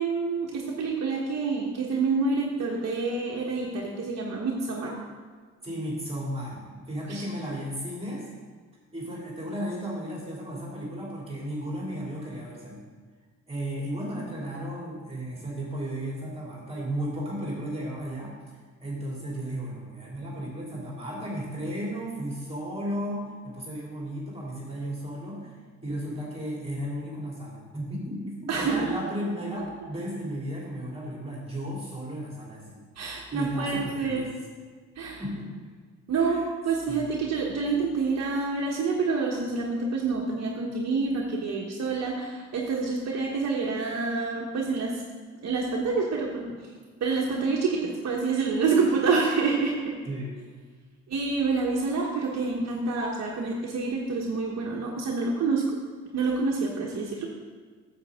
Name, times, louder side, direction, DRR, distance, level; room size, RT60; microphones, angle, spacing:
voice 1, 0.0-4.9 7.0-7.2 28.5-28.9 33.0-34.3 35.0-35.2 36.1-45.0 45.4-46.4 47.0-49.9 51.1-55.6 56.1-57.3, right 4 dB, 60° right, -2 dB, 1.2 m, -27 dB
voice 2, 5.6-8.3 8.9-12.8 13.5-18.3 18.8-25.5 25.8-32.8 33.3-34.3 35.2-35.5 36.1-36.4 36.9-37.1 50.1-50.4, equal, 20° right, -5 dB, 2.7 m, -34 dB
9.5 x 7.7 x 3.6 m, 1.5 s
cardioid pair, 90°, 30 cm